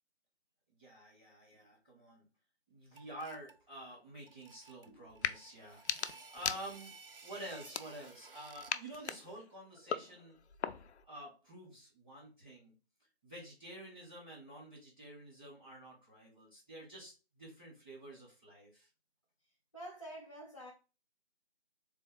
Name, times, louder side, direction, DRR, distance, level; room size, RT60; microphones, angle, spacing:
voice 1, 0.8-2.3 2.7-5.8 6.3-6.9 7.2-10.4 11.1-12.7 13.2-18.9, right 1 dB, 10° right, 1.1 m, -49 dB
sound 1, 3.0-3.6 4.3-8.9, right 4 dB, 60° right, 0.5 m, -55 dB
sound 2, 5.1-5.4 5.7-7.0 7.6-8.3 8.7-11.0, left 7 dB, 85° left, 0.5 m, -40 dB
voice 2, 19.7-20.7, right 1 dB, 30° left, 0.5 m, -47 dB
3.8 x 2.7 x 3.7 m
figure-of-eight pair, 175°, 33 cm